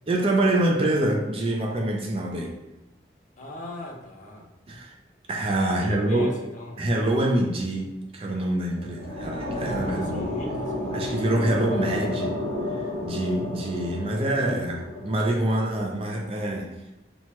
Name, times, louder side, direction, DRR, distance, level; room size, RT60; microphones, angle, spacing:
voice 1, 0.1-2.5 4.7-4.9 5.3-6.3 6.8-10.3 10.9-12.3 12.7-16.7, right 1 dB, 30° right, 0 dB, 0.3 m, -25 dB
voice 2, 3.4-4.5 5.6-6.8 9.8-11.5, left 1 dB, 40° left, 0 dB, 0.4 m, -39 dB
sound 1, 8.7-15.8, left 1 dB, 85° right, 1.0 m, -31 dB
2.9 x 2.2 x 2.9 m, 0.99 s
head